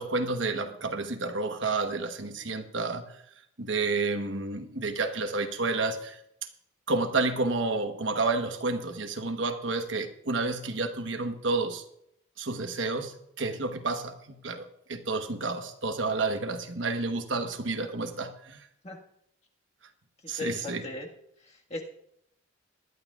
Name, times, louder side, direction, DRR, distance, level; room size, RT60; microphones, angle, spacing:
voice 1, 0.0-3.2 3.6-6.2 6.9-11.8 12.4-18.6 20.3-20.9, right 3 dB, 65° right, 1.1 m, -30 dB
voice 2, 20.2-21.1 21.5-21.8, left 2 dB, 30° left, 1.6 m, -37 dB
20.5 x 11.5 x 2.4 m
head